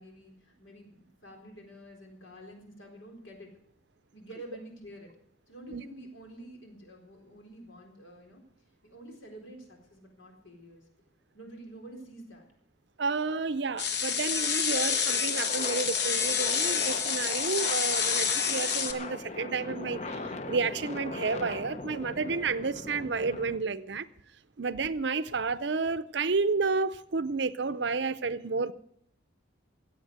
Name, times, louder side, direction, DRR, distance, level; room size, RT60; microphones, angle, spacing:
voice 1, 0.0-3.5 4.1-5.1 5.5-8.4 8.8-10.8 11.3-12.5, right 1 dB, 75° left, 4.1 m, -48 dB
voice 2, 13.0-24.1 24.6-28.7, right 4 dB, 60° right, 0.6 m, -31 dB
sound 1, 13.2-23.6, left 3 dB, 35° left, 0.7 m, -40 dB
sound 2, 13.8-18.9, left 7 dB, 55° left, 1.2 m, -28 dB
16.0 x 8.2 x 8.1 m
head